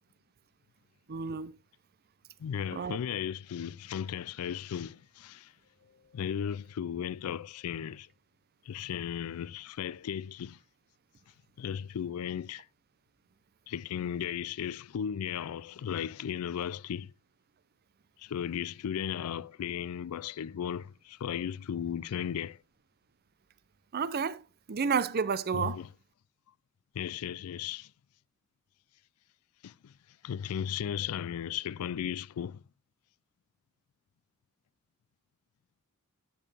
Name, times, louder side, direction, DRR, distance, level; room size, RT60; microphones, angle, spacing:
voice 1, 1.1-1.5 2.7-3.0 23.9-24.4 24.7-25.8, right 6 dB, 45° right, 0.5 m, -30 dB
voice 2, 2.4-5.5 6.1-8.1 8.7-10.6 11.6-12.7 13.7-17.1 18.2-22.6 25.5-25.9 26.9-27.9 29.6-29.9 30.2-32.6, left 8 dB, 85° left, 0.4 m, -35 dB
9.7 x 7.1 x 3.3 m
head